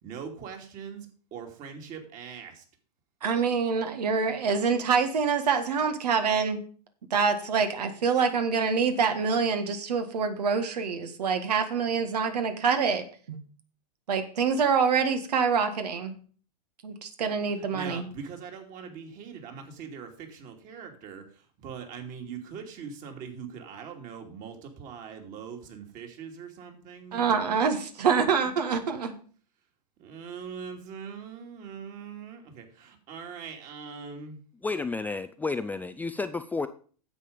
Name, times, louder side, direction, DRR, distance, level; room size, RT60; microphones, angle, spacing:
voice 1, 0.0-2.6 17.7-21.2 21.6-27.8 28.1-28.7 30.0-34.4, right 6 dB, 40° right, 4 dB, 2.7 m, -42 dB
voice 2, 3.2-6.6 7.1-13.4 14.1-16.1 16.8-18.1 27.1-29.1, right 5 dB, 75° right, 8 dB, 1.6 m, -26 dB
voice 3, 34.6-36.7, left 3 dB, 10° left, 9 dB, 0.4 m, -31 dB
9.8 x 7.5 x 5.2 m, 0.43 s
hypercardioid pair, 105°, 21 cm